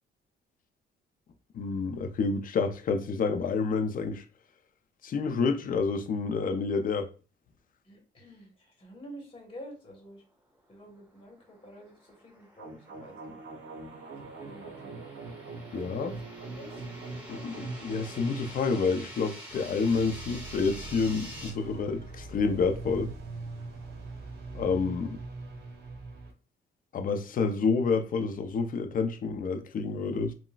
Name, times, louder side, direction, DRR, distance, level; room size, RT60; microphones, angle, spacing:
voice 1, 1.5-4.2 5.0-7.1 15.7-16.2 17.3-23.1 24.5-25.2 26.9-30.3, left 4 dB, 45° left, 0.5 m, -29 dB
voice 2, 7.9-8.5 8.8-10.2 10.7-13.4 14.2-15.0 16.0-16.2 16.5-16.7, equal, 25° left, 1.2 m, -48 dB
sound 1, 11.1-21.5, equal, 10° right, 1.3 m, -48 dB
sound 2, 12.6-26.3, right 3 dB, 55° right, 0.9 m, -43 dB
3.8 x 2.2 x 2.3 m
cardioid pair, 90°, 20 cm